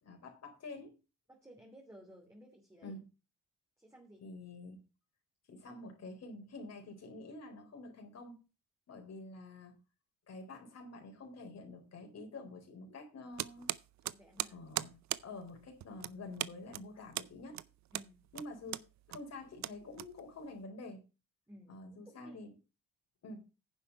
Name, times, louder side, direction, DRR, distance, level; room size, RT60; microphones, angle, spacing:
voice 1, 0.0-1.0 2.8-3.0 4.2-4.8 5.5-8.4 8.9-9.7 10.3-13.7 14.5-14.9 15.2-17.6 18.3-18.8 19.1-21.0 21.7-22.5 23.2-23.4, left 2 dB, 60° left, 3 dB, 4.1 m, -48 dB
voice 2, 1.3-3.0 3.8-4.3 14.0-14.7 17.9-18.3 21.5-22.4, equal, 10° right, 0 dB, 2.7 m, -57 dB
sound 1, 13.4-20.6, right 14 dB, 65° right, 0.6 m, -41 dB
10.0 x 7.2 x 5.4 m, 0.31 s
cardioid pair, 90°, 30 cm